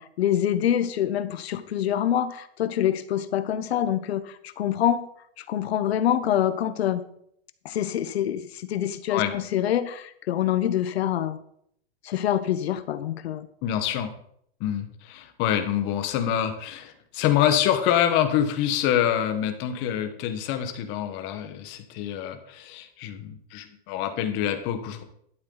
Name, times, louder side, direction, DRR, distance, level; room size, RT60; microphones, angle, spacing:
voice 1, 0.0-5.1 5.4-7.0 7.6-11.4 12.0-13.5, left 10 dB, 80° left, 13 dB, 1.1 m, -26 dB
voice 2, 13.6-14.1 14.6-25.0, left 10 dB, 35° left, 7 dB, 1.3 m, -26 dB
12.0 x 7.7 x 4.0 m, 0.69 s
supercardioid pair, 150°, 31 cm